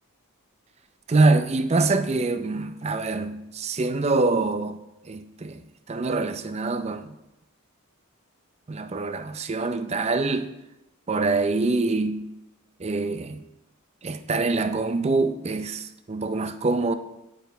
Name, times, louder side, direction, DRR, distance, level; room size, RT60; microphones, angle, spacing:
voice 1, 1.1-4.8 5.1-5.6 5.9-7.1 8.7-10.5 11.1-12.2 12.8-13.4 14.0-16.9, right 3 dB, 30° right, 0.5 m, -25 dB
9.6 x 9.0 x 3.4 m
head